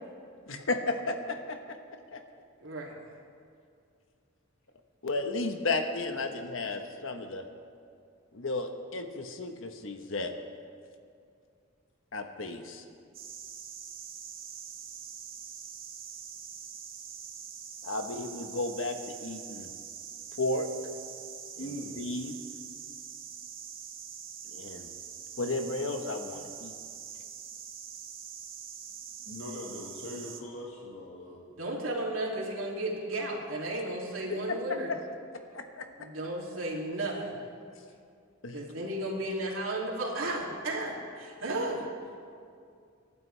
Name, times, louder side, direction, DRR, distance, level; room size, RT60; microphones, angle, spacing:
voice 1, 0.5-1.8 2.1-2.2 5.0-7.4 8.3-10.3 12.1-12.8 17.8-19.7 20.4-20.7 21.6-21.7 22.0-22.3 24.5-24.9 25.4-26.7 34.3-34.4 34.9-35.0 35.5-35.9 38.4-38.6, left 2 dB, 70° left, 6 dB, 1.2 m, -33 dB
voice 2, 2.6-3.0 31.6-34.9 36.0-37.4 38.5-41.8, right 1 dB, 80° right, -2 dB, 2.8 m, -34 dB
sound 1, 13.1-30.4, right 8 dB, 45° right, 1.2 m, -44 dB
voice 3, 21.6-22.0 29.3-31.4, left 1 dB, 90° left, -3 dB, 1.9 m, -41 dB
27.5 x 12.0 x 3.4 m, 2.3 s
head